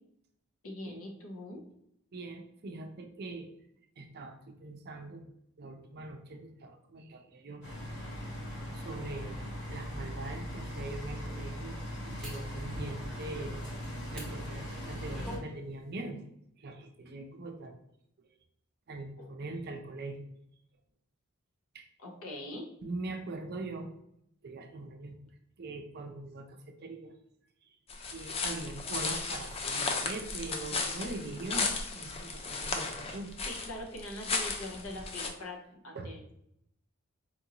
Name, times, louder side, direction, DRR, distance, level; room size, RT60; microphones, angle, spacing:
voice 1, 0.6-1.6 15.1-15.4 19.2-19.3 22.0-22.7 33.4-35.6 35.8-36.3, left 1 dB, 75° left, 1 dB, 0.9 m, -42 dB
voice 2, 2.1-3.5 4.0-5.2 5.6-7.6 8.0-8.1 8.7-9.4 9.7-11.8 12.1-13.8 14.1-16.3 16.6-17.8 18.9-20.2 21.7-21.9 22.8-23.9 24.4-25.2 25.6-27.1 28.1-33.3 35.9-36.1, right 2 dB, 50° right, 5 dB, 0.5 m, -42 dB
sound 1, 7.6-15.4, equal, 55° left, 1.3 m, -39 dB
sound 2, 12.2-12.5 14.1-14.3 14.8-15.5 15.8-16.0, equal, 5° left, 0.9 m, -45 dB
sound 3, 27.9-35.3, left 4 dB, 30° left, 0.4 m, -35 dB
4.4 x 2.5 x 2.8 m, 0.76 s
head